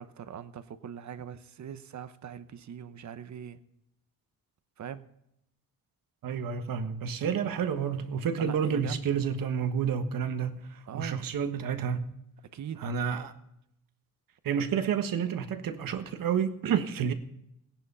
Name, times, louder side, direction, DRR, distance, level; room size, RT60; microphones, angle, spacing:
voice 1, 0.0-3.6 4.8-5.0 8.4-9.2 10.9-11.3 12.5-12.8, right 8 dB, 55° right, 12 dB, 1.0 m, -41 dB
voice 2, 6.2-12.1 12.8-13.3 14.4-17.1, right 7 dB, 75° right, 8 dB, 1.4 m, -30 dB
17.5 x 10.5 x 5.6 m, 0.80 s
wide cardioid pair, 140°, 34 cm